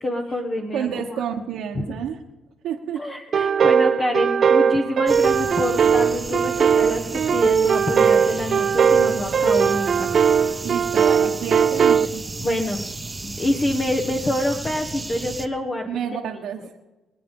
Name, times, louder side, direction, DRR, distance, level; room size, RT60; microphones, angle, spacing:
voice 1, 0.0-1.2 1.7-1.8 3.0-10.1 12.4-12.8 13.2-16.0, left 1 dB, 30° left, 2 dB, 1.5 m, -26 dB
voice 2, 0.7-2.2 2.6-3.0 10.6-12.2 15.9-16.6, right 8 dB, 80° right, -2 dB, 1.3 m, -29 dB
sound 1, 3.3-12.1, right 7 dB, 50° right, 0.5 m, -19 dB
sound 2, 5.1-15.5, right 3 dB, 20° right, 1.1 m, -34 dB
23.0 x 8.4 x 5.4 m, 1.1 s
cardioid pair, 90°, 0 cm